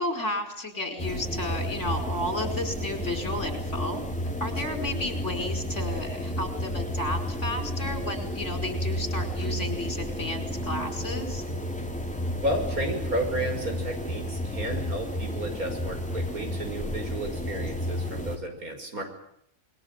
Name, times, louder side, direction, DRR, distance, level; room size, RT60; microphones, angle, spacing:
voice 1, 0.0-4.0 4.4-11.4, left 1 dB, 55° left, 6 dB, 5.3 m, -32 dB
sound 1, 1.0-18.4, equal, 5° left, 3.0 m, -32 dB
voice 2, 12.4-19.0, right 1 dB, 90° right, 5 dB, 6.0 m, -32 dB
26.5 x 22.0 x 9.0 m, 0.72 s
omnidirectional pair, 1.5 m